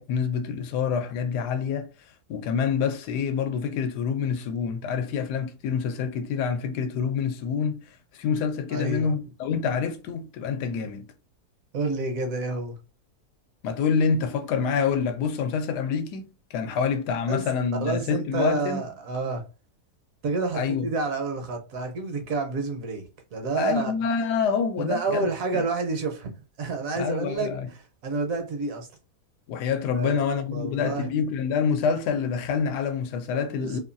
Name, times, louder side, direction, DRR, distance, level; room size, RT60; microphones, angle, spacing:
voice 1, 0.0-1.9 2.3-11.1 13.6-18.8 20.5-20.9 23.6-25.3 25.5-25.6 26.9-27.7 29.5-33.8, left 6 dB, 90° left, 1.2 m, -27 dB
voice 2, 8.7-9.1 11.7-12.8 17.3-17.4 17.8-19.4 20.2-23.9 24.8-26.3 26.6-27.5 28.0-28.9 29.9-30.2 30.5-31.1 33.6-33.8, right 3 dB, 65° right, 1.0 m, -29 dB
2.9 x 2.2 x 2.5 m
omnidirectional pair, 1.7 m